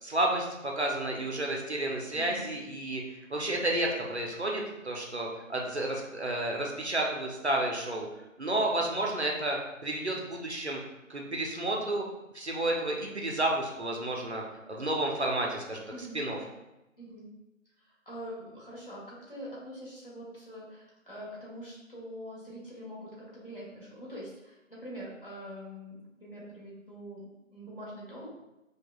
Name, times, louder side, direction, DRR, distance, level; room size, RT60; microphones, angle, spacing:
voice 1, 0.0-8.1 8.4-10.8 11.1-12.0 12.3-14.4 14.7-15.8 16.1-16.4, right 1 dB, 55° right, -1 dB, 0.6 m, -31 dB
voice 2, 2.1-2.4 15.9-16.2 17.0-17.3 17.8-28.3, equal, 45° left, -7 dB, 1.2 m, -44 dB
4.7 x 2.3 x 2.2 m, 0.95 s
figure-of-eight pair, 175°, 40 cm